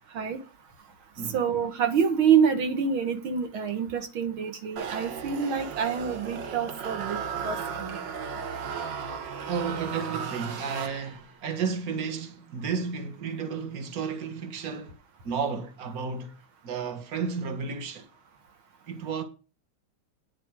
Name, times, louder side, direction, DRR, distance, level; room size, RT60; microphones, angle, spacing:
voice 1, 1.3-8.0, right 7 dB, 80° right, 2.4 m, -26 dB
sound 1, 4.8-11.4, right 6 dB, 60° right, 2.0 m, -35 dB
voice 2, 9.5-15.0 15.2-16.3 16.6-18.1 18.9-19.2, right 5 dB, 45° right, 2.1 m, -32 dB
10.0 x 7.6 x 6.4 m
omnidirectional pair, 2.2 m